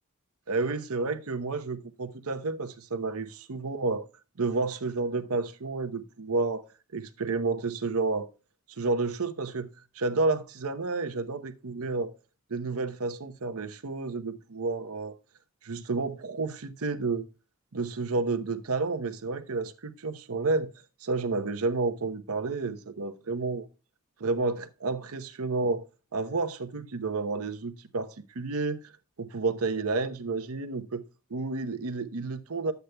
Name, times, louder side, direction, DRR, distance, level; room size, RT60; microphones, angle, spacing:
voice 1, 0.5-4.1 4.4-6.6 6.9-8.3 8.8-9.7 9.9-12.1 12.5-15.2 15.6-17.3 17.7-20.7 21.0-23.7 24.2-25.8 26.1-28.9 29.2-31.0 31.3-32.7, right 3 dB, 80° right, 0.8 m, -30 dB
12.0 x 8.1 x 2.2 m
head